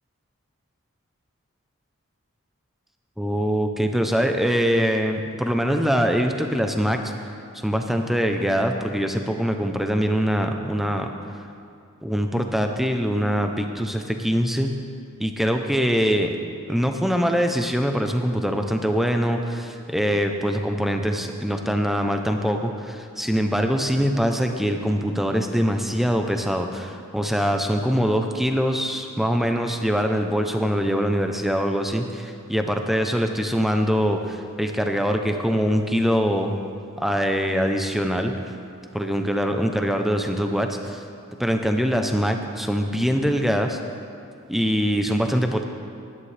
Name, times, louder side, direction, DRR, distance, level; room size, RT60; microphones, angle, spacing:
voice 1, 3.2-7.1 7.6-11.1 12.0-14.7 15.2-16.3 16.7-36.6 37.0-38.3 38.9-41.0 41.4-43.8 44.5-45.6, equal, ahead, 4 dB, 0.6 m, -23 dB
16.5 x 11.0 x 3.3 m, 2.4 s
head